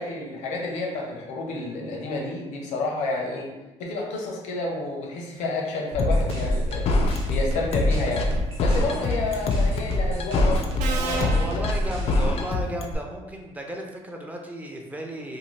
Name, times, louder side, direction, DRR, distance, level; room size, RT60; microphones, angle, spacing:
voice 1, 0.0-3.5 3.8-6.9 7.3-11.5, left 2 dB, 90° left, 0 dB, 0.7 m, -30 dB
sound 1, 5.9-12.3, left 1 dB, 50° right, 0.9 m, -33 dB
sound 2, 6.0-12.9, left 2 dB, 60° left, 0.4 m, -23 dB
Subway metro underground, 9.3-9.7 10.8-12.5, right 4 dB, 85° right, 0.4 m, -33 dB
voice 2, 10.9-15.4, right 1 dB, 15° right, 1 dB, 0.4 m, -34 dB
2.7 x 2.2 x 3.1 m, 1.1 s
cardioid pair, 125°, 12 cm